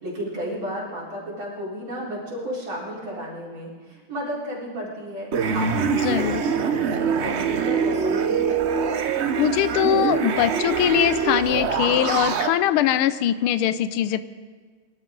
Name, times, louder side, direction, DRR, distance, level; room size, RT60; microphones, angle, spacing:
voice 1, 0.0-8.5, equal, 70° right, -6 dB, 4.9 m, -33 dB
sound 1, 5.3-12.5, right 6 dB, 85° right, 0.6 m, -24 dB
voice 2, 5.9-6.4 9.4-14.2, left 11 dB, 85° left, 14 dB, 1.5 m, -22 dB
23.5 x 12.5 x 3.9 m, 1.5 s
omnidirectional pair, 2.3 m